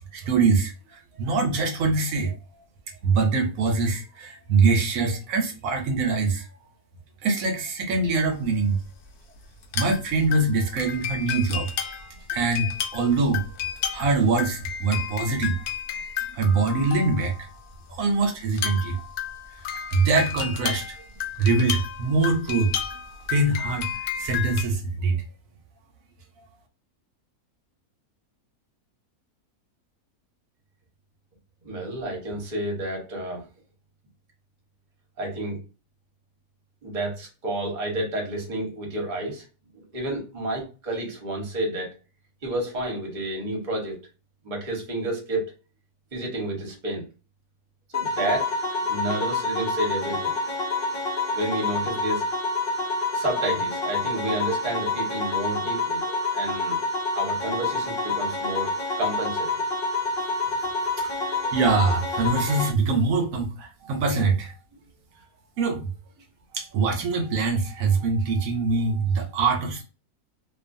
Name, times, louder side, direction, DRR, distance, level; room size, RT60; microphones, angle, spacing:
voice 1, 0.1-2.3 3.0-6.5 7.2-8.8 9.7-11.7 12.3-13.4 13.9-15.5 16.3-17.5 17.9-19.0 19.9-20.8 21.4-22.7 23.3-23.9 24.2-25.2 61.5-64.5 65.6-65.9 66.5-69.8, right 4 dB, 70° right, 1.0 m, -23 dB
sound 1, 8.3-8.5 9.6-10.0 10.3-17.5 18.5-24.6, left 9 dB, 80° left, 1.1 m, -32 dB
voice 2, 31.6-33.5 35.2-35.6 36.8-39.4 39.7-41.9 42.4-44.0 44.4-45.5 46.1-47.1 47.9-48.5 48.8-50.3 51.3-52.3 53.1-56.8 57.1-59.6 61.4-61.5, right 1 dB, 35° right, 0.9 m, -30 dB
sound 2, 47.9-62.7, left 2 dB, 50° left, 0.8 m, -27 dB
2.6 x 2.4 x 2.5 m
omnidirectional pair, 1.6 m